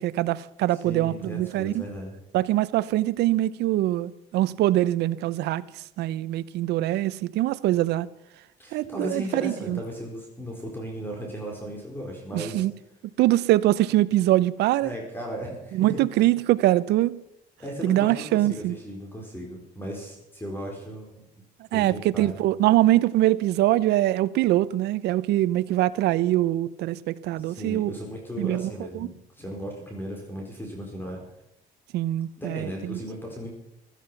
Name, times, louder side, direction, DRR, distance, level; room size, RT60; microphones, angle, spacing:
voice 1, 0.0-1.8 2.3-5.6 6.0-8.1 8.7-9.8 12.3-12.7 13.2-14.9 15.7-17.2 17.8-18.8 21.7-28.0 28.4-29.1 31.9-33.0, right 15 dB, 80° right, 0.7 m, -23 dB
voice 2, 0.7-2.2 8.6-12.6 14.8-16.0 17.6-21.2 21.7-22.3 27.4-31.2 32.4-33.5, equal, 10° left, 4.6 m, -36 dB
16.0 x 13.5 x 5.8 m
cardioid pair, 110°, 17 cm